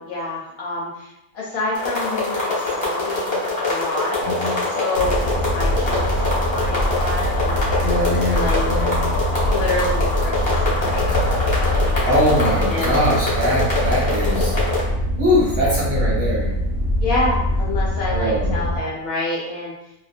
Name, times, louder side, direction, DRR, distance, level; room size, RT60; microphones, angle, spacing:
voice 1, 0.0-8.7 9.4-12.1 12.7-12.9 14.9-15.0 17.0-19.7, left 2 dB, 65° left, -5 dB, 1.0 m, -28 dB
sound 1, 1.7-14.8, left 2 dB, 35° left, 0.5 m, -24 dB
voice 2, 4.2-4.6 7.8-9.2 12.0-14.5 15.2-16.5 18.1-18.7, equal, 55° right, -7 dB, 1.4 m, -22 dB
sound 2, 4.9-18.8, equal, 90° left, 0.5 m, -23 dB
2.7 x 2.5 x 2.5 m, 0.83 s
omnidirectional pair, 1.8 m